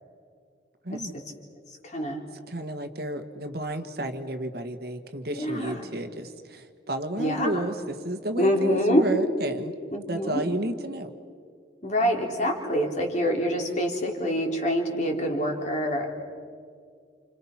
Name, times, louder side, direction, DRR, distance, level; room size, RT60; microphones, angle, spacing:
voice 1, 0.8-1.2 2.5-9.7 10.1-11.1, right 1 dB, 60° right, 8 dB, 1.7 m, -32 dB
voice 2, 1.7-2.2 5.3-5.8 7.1-7.7 8.4-9.0 9.9-10.4 11.8-16.1, equal, 40° left, 2 dB, 3.4 m, -26 dB
30.0 x 29.0 x 5.9 m, 2.2 s
head